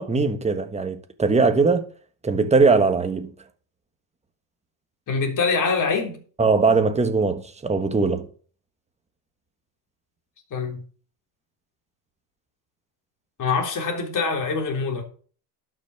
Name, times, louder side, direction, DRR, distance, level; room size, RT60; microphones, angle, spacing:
voice 1, 0.0-1.9 2.2-3.3 6.4-8.3, right 4 dB, 15° right, 1.4 m, -20 dB
voice 2, 5.1-6.2 10.5-10.8 13.4-15.0, left 4 dB, 40° left, 3.7 m, -24 dB
11.5 x 6.2 x 5.9 m
supercardioid pair, 110°, 48 cm